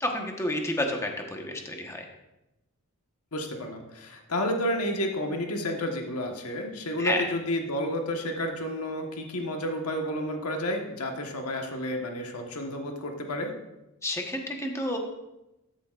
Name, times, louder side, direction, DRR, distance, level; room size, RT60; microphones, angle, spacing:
voice 1, 0.0-2.0 7.0-7.2 14.0-15.0, left 1 dB, 15° left, 2 dB, 1.2 m, -30 dB
voice 2, 3.3-13.5, left 1 dB, 80° left, 2 dB, 1.4 m, -31 dB
13.5 x 8.5 x 2.5 m, 0.95 s
head